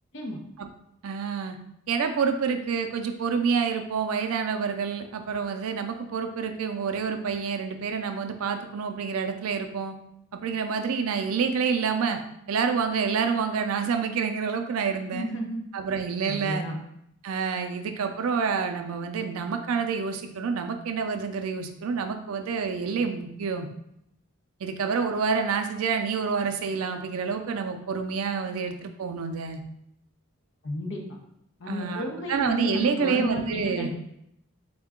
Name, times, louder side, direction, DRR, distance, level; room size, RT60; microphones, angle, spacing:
voice 1, 1.0-1.6 1.9-9.9 10.3-12.2 12.5-15.3 15.7-16.7 17.2-23.7 24.6-29.6 31.7-32.0 32.3-33.9, right 5 dB, 80° right, 6 dB, 0.4 m, -28 dB
voice 2, 15.1-15.6 16.3-16.8 30.6-31.0 31.6-33.9, equal, 55° left, 0 dB, 0.6 m, -32 dB
3.6 x 2.2 x 3.5 m, 0.78 s
head